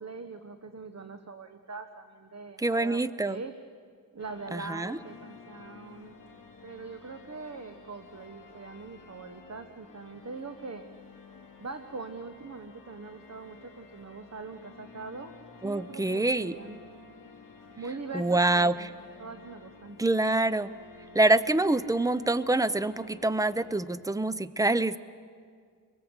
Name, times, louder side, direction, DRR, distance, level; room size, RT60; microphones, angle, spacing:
voice 1, 0.0-3.5 4.1-6.2 6.6-10.8 11.6-15.3 15.6-16.8 17.8-18.9 19.2-20.0, right 4 dB, 45° right, 8 dB, 1.3 m, -42 dB
voice 2, 2.6-3.4 4.5-5.0 15.6-16.5 18.1-18.9 20.0-20.7 21.1-25.0, right 2 dB, 10° right, 15 dB, 0.8 m, -26 dB
sound 1, 4.2-23.8, left 4 dB, 60° left, 4.9 m, -52 dB
28.0 x 22.5 x 8.2 m, 2.1 s
cardioid pair, 65°, 36 cm